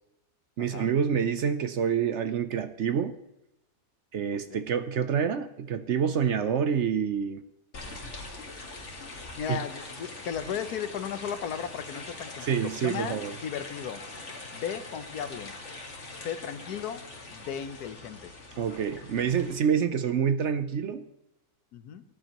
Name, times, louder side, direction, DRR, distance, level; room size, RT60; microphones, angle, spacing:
voice 1, 0.6-3.2 4.1-7.4 9.5-9.6 12.5-13.3 18.6-21.0, right 7 dB, 60° right, 11 dB, 0.8 m, -27 dB
sound 1, 7.7-19.6, left 2 dB, 50° left, 2.1 m, -43 dB
voice 2, 9.3-14.0 14.5-15.5 16.1-18.3 21.7-22.0, left 8 dB, 90° left, 11 dB, 1.4 m, -36 dB
19.0 x 10.0 x 3.0 m, 0.86 s
omnidirectional pair, 1.6 m